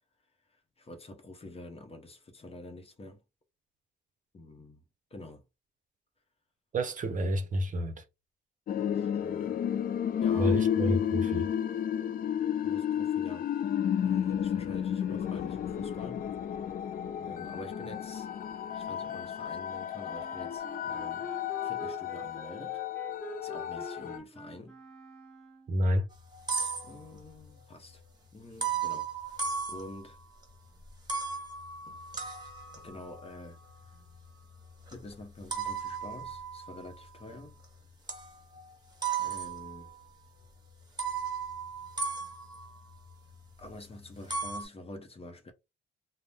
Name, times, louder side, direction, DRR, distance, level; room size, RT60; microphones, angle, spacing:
voice 1, 0.5-3.2 4.3-4.8 5.1-5.4 8.8-9.6 10.2-10.6 12.6-13.5 14.0-16.6 17.2-18.3 18.7-21.3 21.6-22.8 23.4-24.8 26.8-28.0 28.3-29.4 29.7-30.2 31.9-32.0 32.8-33.6 33.8-34.0 34.9-37.6 39.2-39.9 43.6-45.5, left 2 dB, 30° left, 0.8 m, -47 dB
voice 2, 6.7-8.0 10.3-11.5 25.7-26.1, equal, 40° right, 0.7 m, -29 dB
sound 1, 8.7-24.2, left 9 dB, 45° left, 0.4 m, -32 dB
Wind instrument woodwind instrument, 20.1-25.8, right 2 dB, 5° left, 1.3 m, -46 dB
sound 2, 26.1-27.4 28.6-30.4 30.9-37.6 38.1-38.6 39.0-40.0 40.4-40.5 41.0-43.7 44.0-44.6, right 5 dB, 20° right, 1.1 m, -36 dB
2.5 x 2.0 x 3.4 m
cardioid pair, 90°, 20 cm